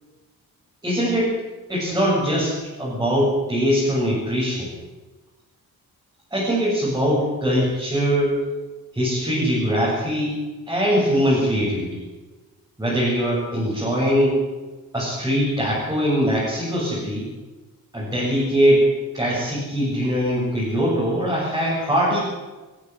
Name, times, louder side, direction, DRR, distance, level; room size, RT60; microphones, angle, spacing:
voice 1, 0.8-1.4 1.7-4.7 6.3-8.3 8.9-10.4 10.7-12.0 12.8-14.4 14.9-17.3 17.9-18.9 19.1-22.2, equal, 10° right, -9 dB, 7.6 m, -21 dB
20.0 x 15.5 x 8.3 m, 1.2 s
wide cardioid pair, 155°, 35 cm